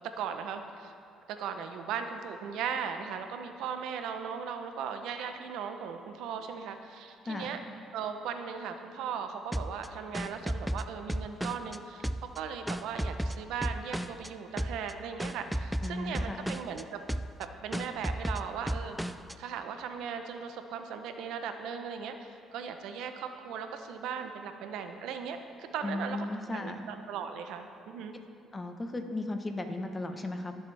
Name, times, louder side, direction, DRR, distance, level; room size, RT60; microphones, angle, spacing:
voice 1, 0.2-0.9 1.3-7.6 7.9-16.9 17.4-26.3 26.5-28.1, right 7 dB, 80° right, 7 dB, 0.8 m, -38 dB
sound 1, 9.5-11.8 12.0-14.3 14.6-14.9 15.2-16.8 17.1-17.4 17.7-19.3, right 1 dB, 5° right, 0.3 m, -34 dB
voice 2, 15.8-16.5 25.8-26.8 28.5-30.6, left 2 dB, 20° left, 6 dB, 1.1 m, -35 dB
22.0 x 7.3 x 3.4 m, 2.5 s
cardioid pair, 95°, 0 cm